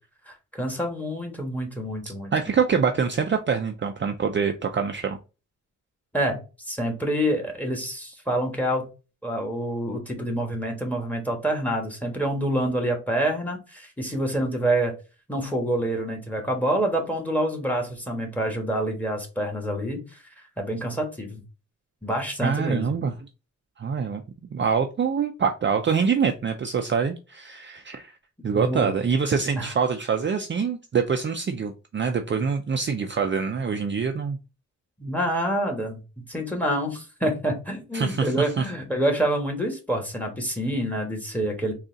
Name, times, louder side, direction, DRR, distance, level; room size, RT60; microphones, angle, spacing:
voice 1, 0.3-2.3 6.1-8.9 9.2-14.9 15.3-20.0 20.6-21.4 22.0-22.9 28.5-29.0 29.6-29.7 35.0-41.7, right 1 dB, 5° left, 3 dB, 1.3 m, -27 dB
voice 2, 2.3-5.2 22.4-23.1 23.8-24.2 24.5-28.1 28.4-34.4 37.9-38.6, right 6 dB, 40° right, 4 dB, 0.4 m, -25 dB
3.9 x 2.4 x 3.7 m, 0.31 s
wide cardioid pair, 90°, 31 cm